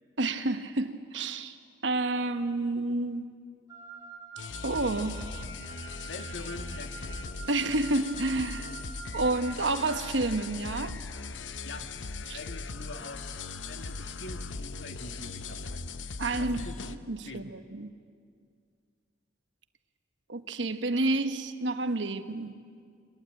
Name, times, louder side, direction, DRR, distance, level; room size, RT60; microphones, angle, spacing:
voice 1, 0.2-1.6 1.8-3.3 4.6-5.2 7.5-8.7 9.1-11.0 12.3-12.4 16.2-17.9 20.3-22.5, right 2 dB, 75° right, 9 dB, 1.2 m, -29 dB
Wind instrument woodwind instrument, 3.7-10.1, right 5 dB, 20° right, 2.8 m, -46 dB
sound 1, 4.4-17.0, left 4 dB, 80° left, 0.8 m, -39 dB
voice 2, 6.0-7.2 11.6-11.9 12.3-13.4 13.6-15.9 16.4-16.8 17.2-17.5, left 2 dB, 65° left, 6 dB, 1.8 m, -44 dB
22.5 x 21.5 x 9.2 m, 2.2 s
head